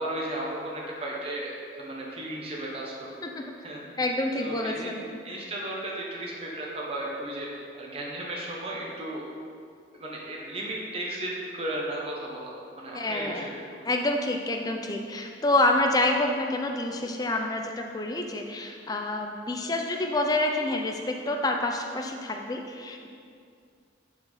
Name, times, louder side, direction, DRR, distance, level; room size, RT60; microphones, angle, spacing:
voice 1, 0.0-3.3 3.6-3.8 4.4-4.9 5.2-7.5 7.7-9.2 9.9-13.8, right 1 dB, 30° right, -3 dB, 0.8 m, -35 dB
voice 2, 4.0-5.0 5.3-5.5 12.9-13.5 13.8-23.1, left 2 dB, 20° left, 2 dB, 0.4 m, -28 dB
5.6 x 4.9 x 3.8 m, 2.3 s
head